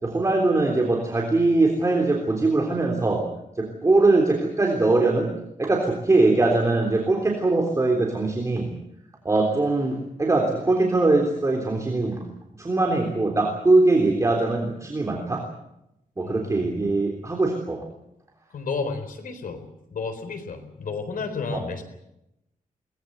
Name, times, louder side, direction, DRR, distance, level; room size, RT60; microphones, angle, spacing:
voice 1, 0.0-3.3 3.6-5.3 5.6-8.7 9.3-12.2 12.6-15.4 16.2-17.8 21.5-21.6, right 2 dB, 20° right, 1 dB, 3.4 m, -21 dB
voice 2, 16.2-16.6 18.5-19.6 19.9-21.8, left 4 dB, 80° left, 8 dB, 4.1 m, -32 dB
23.0 x 19.5 x 8.0 m, 0.85 s
wide cardioid pair, 150°, 14 cm